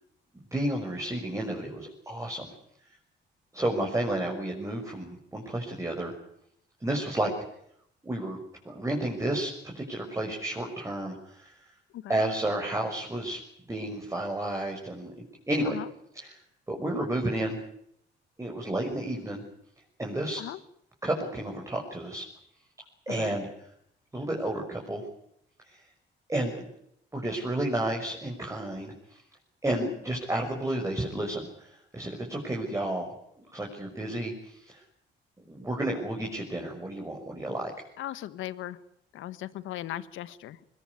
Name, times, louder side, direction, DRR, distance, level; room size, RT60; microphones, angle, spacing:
voice 1, 0.5-2.5 3.5-6.1 6.8-7.3 8.0-8.4 8.6-11.6 12.1-13.4 13.7-15.8 16.1-16.3 16.7-17.6 18.4-19.4 20.0-20.4 21.0-22.3 23.1-23.5 24.1-25.0 25.6-25.8 26.3-26.7 27.1-29.2 29.6-33.1 33.4-34.8 35.5-37.7, right 1 dB, 15° right, 0 dB, 6.1 m, -31 dB
voice 2, 38.0-38.8 39.1-40.6, left 13 dB, 85° left, 15 dB, 1.4 m, -37 dB
21.5 x 21.0 x 9.7 m, 0.73 s
cardioid pair, 90°, 20 cm